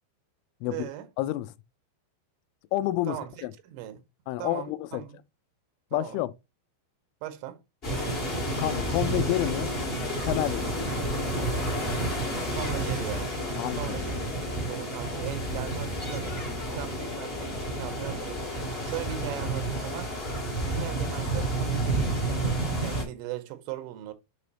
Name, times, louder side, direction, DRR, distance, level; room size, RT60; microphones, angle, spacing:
voice 1, 0.6-1.1 3.1-4.0 4.4-5.2 5.9-6.2 7.2-7.6 12.5-13.4 13.8-16.4 16.7-18.4 18.8-20.1 20.6-24.1, right 13 dB, 90° right, 3.4 m, -39 dB
voice 2, 1.2-1.5 2.7-3.5 4.3-5.0 5.9-6.3 8.6-9.7 10.2-10.9 13.6-14.2, left 16 dB, 85° left, 3.1 m, -29 dB
sound 1, 7.8-23.0, right 1 dB, 40° left, 0.8 m, -30 dB
7.7 x 3.3 x 4.0 m
omnidirectional pair, 5.5 m